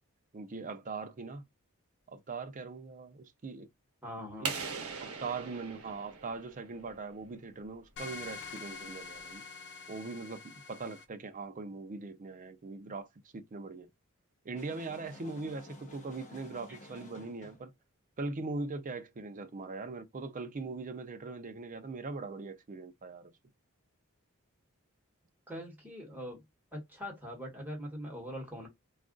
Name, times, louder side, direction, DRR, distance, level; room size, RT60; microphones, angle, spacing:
voice 1, 0.3-1.4 2.1-3.7 4.4-4.6 5.0-9.4 9.9-13.1 13.3-13.9 14.4-17.7 18.2-23.3, right 3 dB, 35° right, 0.5 m, -41 dB
voice 2, 4.0-4.7 16.7-16.9 25.5-26.4 26.7-28.7, equal, 10° right, 1.3 m, -42 dB
sound 1, 4.4-7.1, right 5 dB, 75° right, 0.9 m, -40 dB
sound 2, 8.0-11.0, left 4 dB, 55° left, 0.5 m, -45 dB
sound 3, 14.5-17.7, left 1 dB, 35° left, 0.9 m, -53 dB
2.4 x 2.3 x 3.7 m
head